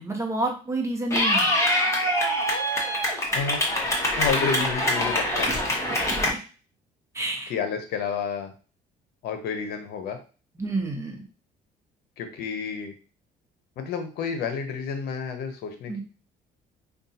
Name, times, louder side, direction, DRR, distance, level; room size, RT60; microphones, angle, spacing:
voice 1, 0.0-1.5 7.1-7.5 10.6-11.2 15.9-16.0, right 2 dB, 15° right, 2 dB, 1.0 m, -29 dB
Clapping / Cheering, 1.1-6.3, left 1 dB, 15° left, 1.2 m, -24 dB
voice 2, 3.3-5.7 7.5-8.5 9.2-10.2 12.2-12.9 13.8-16.0, left 6 dB, 70° left, 6 dB, 0.8 m, -30 dB
5.1 x 2.4 x 2.7 m, 0.35 s
cardioid pair, 110°, 17 cm